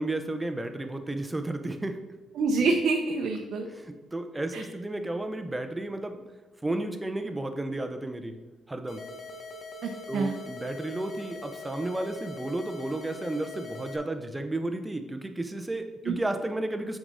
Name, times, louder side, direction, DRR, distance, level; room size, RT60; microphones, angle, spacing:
voice 1, 0.0-2.0 3.7-6.2 6.6-8.4 8.7-9.0 10.1-17.0, right 2 dB, 15° right, 7 dB, 0.8 m, -32 dB
voice 2, 2.4-3.7 4.5-4.6 9.8-10.3 16.1-16.2, right 4 dB, 70° right, 2 dB, 0.7 m, -27 dB
sound 1, 8.9-14.0, left 2 dB, 55° left, 0.9 m, -42 dB
7.3 x 4.9 x 4.1 m, 1.2 s
cardioid pair, 90°, 0 cm